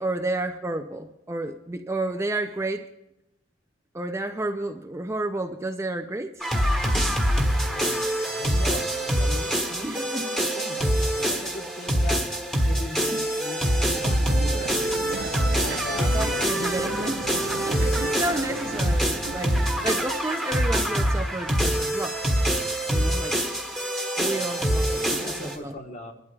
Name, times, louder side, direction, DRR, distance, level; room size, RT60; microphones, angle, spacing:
voice 1, 0.0-2.9 3.9-6.4 9.8-10.3 13.1-13.2 16.1-17.2 17.7-22.2 22.9-23.4 24.2-25.7, right 2 dB, 15° right, 5 dB, 0.4 m, -31 dB
sound 1, 6.4-25.6, equal, 5° left, 1.4 m, -25 dB
voice 2, 7.5-12.3 12.6-14.8 15.4-17.4 24.4-26.1, left 2 dB, 40° left, 3 dB, 1.2 m, -40 dB
sound 2, 14.0-20.0, right 2 dB, 60° right, 0.7 m, -35 dB
26.0 x 12.0 x 2.3 m, 0.85 s
head